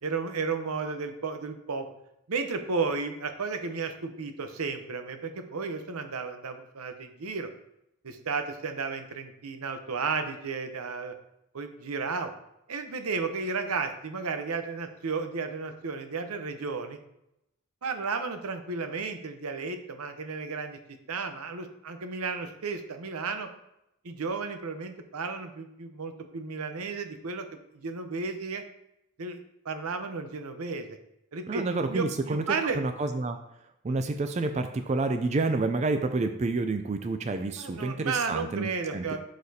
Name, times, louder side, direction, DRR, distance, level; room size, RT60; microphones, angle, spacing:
voice 1, 0.0-1.9 2.3-7.5 8.0-11.1 11.5-12.3 12.7-17.0 17.8-20.8 21.1-23.5 24.0-27.5 27.7-28.6 29.2-31.0 31.3-32.8 37.6-39.2, right 4 dB, 85° right, 7 dB, 0.8 m, -33 dB
voice 2, 31.5-33.4 33.8-39.2, right 3 dB, 30° right, 8 dB, 0.3 m, -29 dB
11.0 x 4.1 x 2.8 m, 0.84 s
head